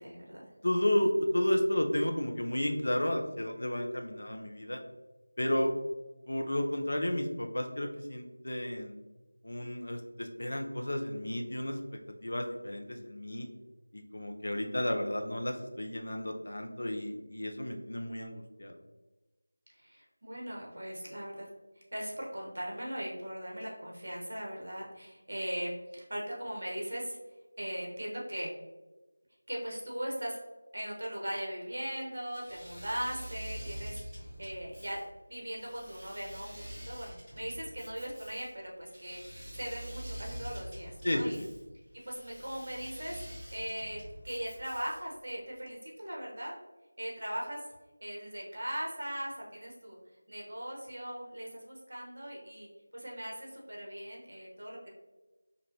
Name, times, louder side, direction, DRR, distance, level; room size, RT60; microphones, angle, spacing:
voice 1, 0.0-0.5 19.7-21.5 21.9-27.2 27.6-28.5 29.5-30.4 30.7-35.0 35.3-41.4 42.0-46.5 47.0-47.6 48.0-50.0 50.3-54.9, equal, 55° right, -2 dB, 1.2 m, -39 dB
voice 2, 0.6-4.8 5.4-5.7 6.3-8.9 9.4-11.8 12.2-13.5 13.9-18.8 41.0-41.5, left 1 dB, 65° left, 3 dB, 0.6 m, -32 dB
Engine / Mechanisms, 32.3-45.2, equal, 5° right, 1.1 m, -46 dB
5.3 x 2.5 x 2.8 m, 1.1 s
figure-of-eight pair, 175°, 0 cm